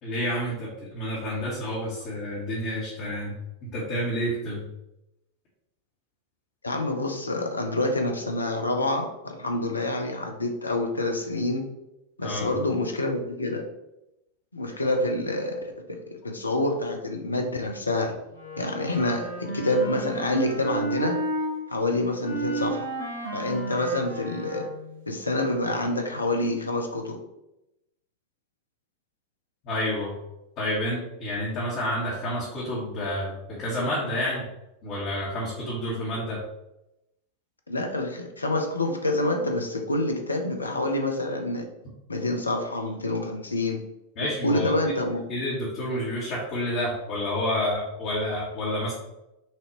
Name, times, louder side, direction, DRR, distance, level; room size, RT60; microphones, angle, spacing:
voice 1, 0.0-4.7 12.2-12.5 29.6-30.1 30.6-34.5 34.8-36.4 44.2-44.7 45.3-48.9, equal, 40° left, -6 dB, 1.4 m, -29 dB
voice 2, 6.6-11.6 12.2-13.6 14.5-18.1 18.6-21.2 21.7-22.9 23.3-24.7 25.1-27.2 37.7-41.7 42.1-43.8 44.4-45.2, left 2 dB, 80° left, 4 dB, 0.7 m, -27 dB
Wind instrument woodwind instrument, 18.3-21.5 22.2-25.0, right 1 dB, 80° right, 1.7 m, -32 dB
6.0 x 2.8 x 3.0 m, 0.90 s
figure-of-eight pair, 90°, 0 cm